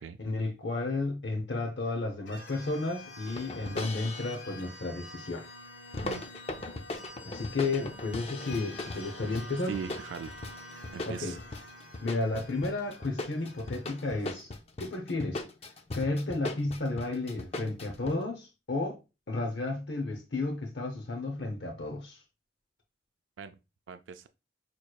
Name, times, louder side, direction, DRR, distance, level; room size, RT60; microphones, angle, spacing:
voice 1, 0.2-5.5 7.2-9.7 11.1-11.4 12.0-14.5 14.8-15.4 15.9-19.0 19.3-22.2, left 2 dB, 70° left, 0.8 m, -32 dB
sound 1, 2.3-14.2, left 1 dB, 85° left, 1.2 m, -48 dB
sound 2, 3.3-4.4 5.9-18.1, left 2 dB, 35° left, 0.5 m, -39 dB
voice 2, 9.7-10.3 10.9-11.4 23.4-23.6 23.9-24.3, right 6 dB, 85° right, 0.3 m, -39 dB
6.2 x 3.1 x 2.3 m
head